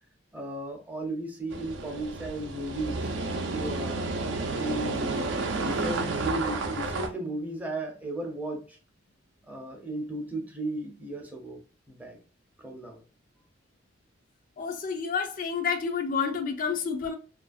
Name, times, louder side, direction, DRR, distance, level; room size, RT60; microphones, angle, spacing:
voice 1, 0.3-3.0 3.5-4.1 4.5-5.3 5.6-8.8 9.5-11.6 11.9-12.2 12.6-13.0, right 1 dB, 10° right, 0.5 m, -35 dB
sound 1, 1.5-7.1, right 3 dB, 70° right, 0.5 m, -31 dB
voice 2, 14.6-17.2, left 5 dB, 45° left, 0.4 m, -29 dB
2.7 x 2.4 x 2.4 m
head